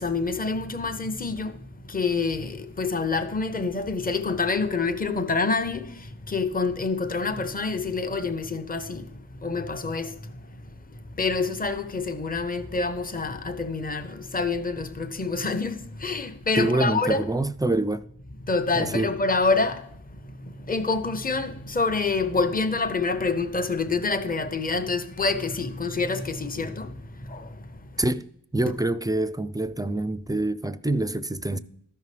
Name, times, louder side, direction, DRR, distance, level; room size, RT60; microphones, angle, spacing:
voice 1, 0.0-1.5 1.9-5.9 6.3-9.0 9.4-10.2 11.2-17.3 18.4-19.8 20.7-26.9 27.3-27.5, left 4 dB, 20° left, 0.7 m, -27 dB
voice 2, 16.6-18.1 18.8-19.1 28.0-28.3 28.5-31.6, right 2 dB, 10° right, 0.3 m, -26 dB
13.5 x 5.5 x 3.2 m
wide cardioid pair, 45°, 40 cm